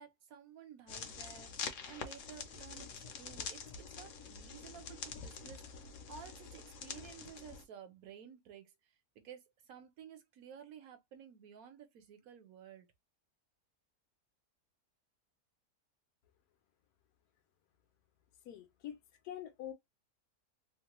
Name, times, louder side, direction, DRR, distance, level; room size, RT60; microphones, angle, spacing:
voice 1, 0.0-3.7 4.0-12.9, right 8 dB, 70° right, 1.2 m, -54 dB
sound 1, 0.9-7.6, left 6 dB, 65° left, 0.9 m, -46 dB
voice 2, 18.4-19.0 19.2-19.7, left 11 dB, 80° left, 1.2 m, -45 dB
3.1 x 2.2 x 2.9 m
omnidirectional pair, 1.6 m